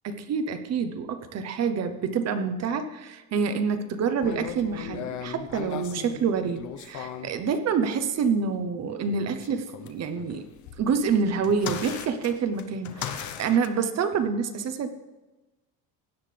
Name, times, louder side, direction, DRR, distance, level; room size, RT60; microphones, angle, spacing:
voice 1, 0.0-10.5 10.8-14.9, right 6 dB, 40° right, 9 dB, 0.9 m, -27 dB
sound 1, 4.2-7.4 9.0-13.7, left 8 dB, 50° left, 0.9 m, -38 dB
16.5 x 9.5 x 3.4 m, 1.1 s
cardioid pair, 155°, 38 cm